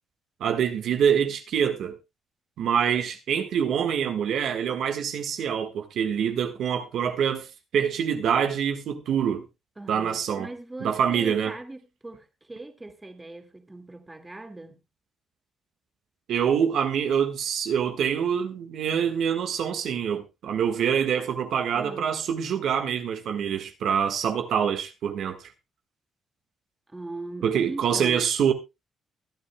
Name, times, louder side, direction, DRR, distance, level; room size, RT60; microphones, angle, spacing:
voice 1, 0.4-2.0 2.6-7.5 7.7-9.4 9.9-10.5 10.8-11.5 16.3-25.5 27.4-28.5, right 8 dB, 70° right, 1.5 m, -25 dB
voice 2, 9.8-14.8 21.7-22.2 26.9-28.3, right 2 dB, 15° right, 2.0 m, -40 dB
23.0 x 8.8 x 2.2 m
cardioid pair, 90°, 0 cm